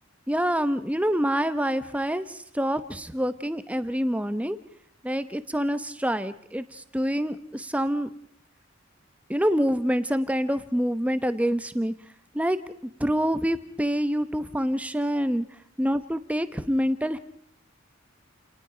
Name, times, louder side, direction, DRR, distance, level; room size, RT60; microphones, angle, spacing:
voice 1, 0.3-4.6 5.0-8.1 9.3-11.9 12.3-12.6 13.0-15.4 15.8-17.2, equal, 5° right, 12 dB, 0.8 m, -26 dB
29.5 x 19.0 x 5.1 m, 0.66 s
head